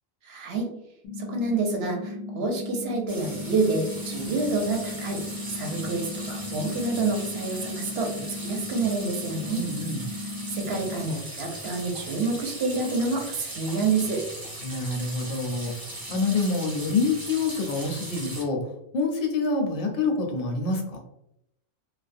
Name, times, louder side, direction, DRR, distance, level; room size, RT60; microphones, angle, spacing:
voice 1, 0.2-0.7 1.2-5.2 5.5-9.7 10.5-14.2, right 3 dB, 65° right, 1 dB, 0.8 m, -28 dB
sound 1, 1.0-11.1, left 2 dB, 85° left, 1.0 m, -36 dB
sound 2, 3.1-18.4, right 1 dB, 25° right, 0.5 m, -39 dB
voice 2, 9.5-10.0 14.6-15.7 16.1-18.6 18.9-21.0, left 3 dB, 60° left, 1 dB, 0.7 m, -26 dB
2.4 x 2.0 x 2.5 m, 0.78 s
omnidirectional pair, 1.2 m